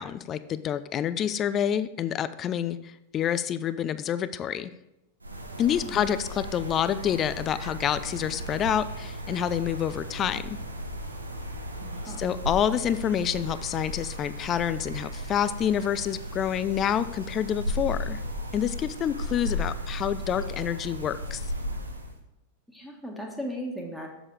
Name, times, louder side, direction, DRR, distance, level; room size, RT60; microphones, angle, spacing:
voice 1, 0.0-4.7 5.6-10.6 12.1-18.2 18.5-21.5, left 9 dB, 30° left, 14 dB, 0.4 m, -28 dB
sound 1, 5.2-22.2, equal, 80° right, 0.9 m, -35 dB
voice 2, 11.8-12.2 19.6-19.8 22.7-24.1, equal, ahead, -1 dB, 1.4 m, -37 dB
7.1 x 7.0 x 4.9 m, 0.89 s
figure-of-eight pair, 90°, 0 cm